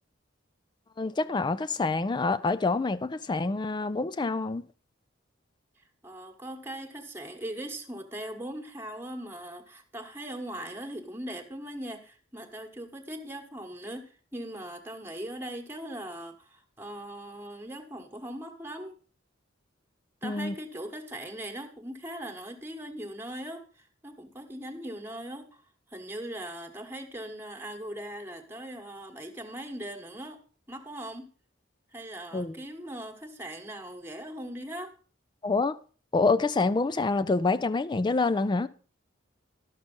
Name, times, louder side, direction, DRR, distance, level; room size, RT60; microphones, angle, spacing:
voice 1, 1.0-4.6 20.2-20.5 32.3-32.6 35.4-35.8 36.1-38.7, left 3 dB, 25° left, 0.4 m, -27 dB
voice 2, 6.0-19.0 20.2-25.6 25.9-30.4 30.7-31.3 31.9-34.9, right 1 dB, 10° right, 1.3 m, -40 dB
11.5 x 6.7 x 5.2 m
head